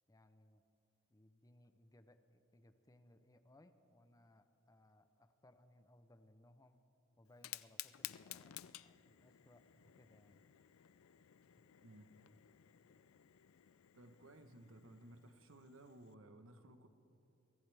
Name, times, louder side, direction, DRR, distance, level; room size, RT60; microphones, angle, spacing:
voice 1, 0.1-0.6 1.1-6.8 7.2-10.4, left 1 dB, 15° left, 10 dB, 0.6 m, -67 dB
Fire, 7.3-16.1, left 14 dB, 90° left, 0.4 m, -55 dB
voice 2, 13.9-16.9, right 1 dB, 75° right, 8 dB, 1.1 m, -58 dB
23.0 x 15.0 x 3.5 m, 2.8 s
head